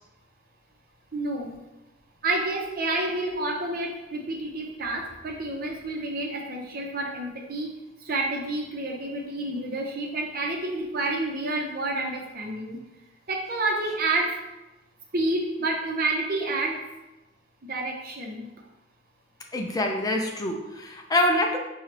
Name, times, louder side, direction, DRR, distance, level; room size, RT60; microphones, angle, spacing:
voice 1, 1.1-1.6 2.2-7.7 8.0-12.8 13.3-14.3 15.1-16.8 17.6-18.5, right 2 dB, 50° right, 0 dB, 0.8 m, -29 dB
voice 2, 19.5-21.6, left 1 dB, 20° left, 2 dB, 0.4 m, -25 dB
5.7 x 2.3 x 3.3 m, 1.0 s
head